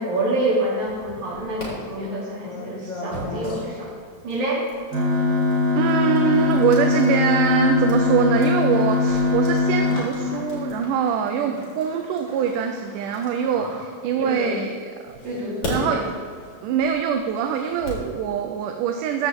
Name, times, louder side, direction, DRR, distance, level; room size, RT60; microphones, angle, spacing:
voice 1, 0.0-3.9 4.2-4.6 11.3-11.6 13.5-13.8 14.2-14.6 15.2-16.0, right 1 dB, 65° right, -6 dB, 4.5 m, -27 dB
sound 1, 0.8-1.7 2.4-14.4 15.1-18.1, left 2 dB, 65° left, 4.9 m, -39 dB
sound 2, 4.9-10.8, left 4 dB, 30° right, 4.1 m, -21 dB
voice 2, 5.8-14.8 15.0-15.1 15.7-16.1 16.6-19.3, right 7 dB, 85° right, 4 dB, 2.3 m, -23 dB
15.5 x 10.5 x 3.7 m, 2.1 s
omnidirectional pair, 3.6 m